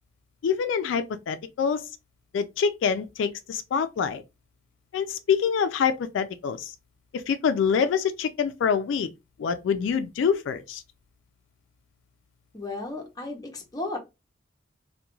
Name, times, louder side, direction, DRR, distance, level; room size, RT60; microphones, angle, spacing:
voice 1, 0.4-1.9 2.3-4.2 4.9-6.7 7.1-9.1 9.4-10.8, left 6 dB, 85° left, 0.3 m, -26 dB
voice 2, 12.5-14.0, left 2 dB, 20° left, 0.6 m, -34 dB
2.3 x 2.2 x 2.9 m
head